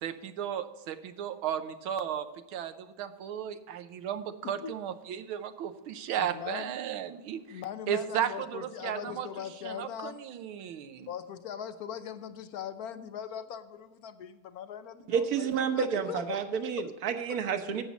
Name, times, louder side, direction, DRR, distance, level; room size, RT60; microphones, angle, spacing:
voice 1, 0.0-2.3 2.5-11.1, right 9 dB, 90° right, 10 dB, 1.6 m, -35 dB
voice 2, 6.2-6.7 7.5-10.2 11.1-15.5 15.7-16.4 16.8-16.9 17.3-17.4, left 8 dB, 70° left, 11 dB, 0.9 m, -40 dB
voice 3, 15.1-17.8, right 7 dB, 55° right, 7 dB, 1.3 m, -30 dB
12.0 x 8.6 x 4.0 m, 1.1 s
omnidirectional pair, 2.2 m